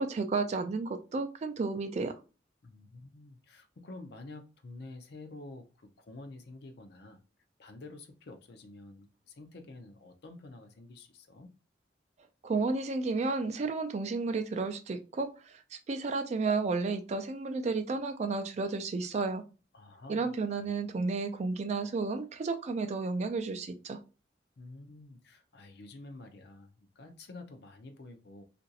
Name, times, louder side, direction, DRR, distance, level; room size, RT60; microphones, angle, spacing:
voice 1, 0.0-2.1 12.4-19.4 20.1-24.0, right 4 dB, 40° right, 8 dB, 0.3 m, -32 dB
voice 2, 2.6-7.2 7.6-11.5 19.7-20.3 20.6-20.8 24.6-28.4, left 2 dB, 65° left, 6 dB, 0.5 m, -49 dB
2.9 x 2.5 x 2.7 m, 0.32 s
head